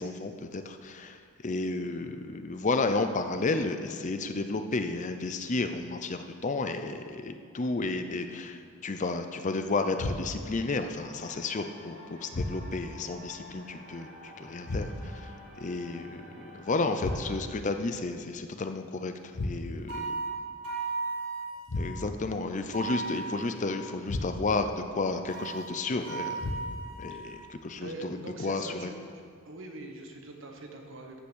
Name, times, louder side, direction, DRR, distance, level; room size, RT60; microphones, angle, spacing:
voice 1, 0.0-20.1 21.8-26.5 27.0-28.9, left 3 dB, 35° left, 7 dB, 0.5 m, -32 dB
sound 1, 10.0-10.6 12.3-13.0 14.7-15.3 17.0-17.6 19.3-20.0 21.7-22.3 24.1-24.7 26.4-27.0, left 2 dB, 85° left, 0.8 m, -35 dB
sound 2, 10.2-17.4, left 1 dB, 30° right, 1.9 m, -50 dB
sound 3, 19.9-22.0 22.7-24.0 25.3-27.5, right 3 dB, 80° right, 1.7 m, -36 dB
voice 2, 27.8-28.9 29.4-31.2, right 2 dB, 60° right, 2 dB, 1.4 m, -43 dB
14.0 x 5.8 x 6.3 m, 2.2 s
head